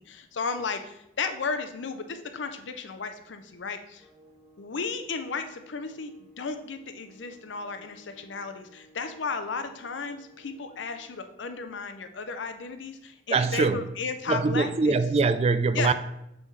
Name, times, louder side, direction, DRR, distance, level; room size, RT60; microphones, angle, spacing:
voice 1, 0.0-4.0 4.6-14.9 15.7-15.9, left 5 dB, 75° left, 0.6 m, -34 dB
sound 1, 4.0-11.0, right 1 dB, 10° right, 1.9 m, -57 dB
voice 2, 13.3-13.9 14.3-15.9, right 4 dB, 35° right, 0.3 m, -23 dB
7.0 x 5.5 x 3.2 m
head